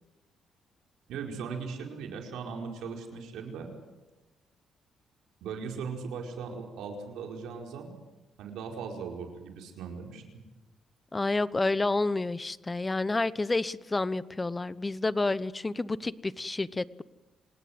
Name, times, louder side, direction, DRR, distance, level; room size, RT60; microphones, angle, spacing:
voice 1, 1.1-3.7 5.4-8.0 8.4-10.2, right 5 dB, 85° right, 2 dB, 4.8 m, -38 dB
voice 2, 11.1-17.0, left 2 dB, 20° left, 17 dB, 0.9 m, -29 dB
27.0 x 19.0 x 8.0 m, 1.1 s
cardioid pair, 90°, 0 cm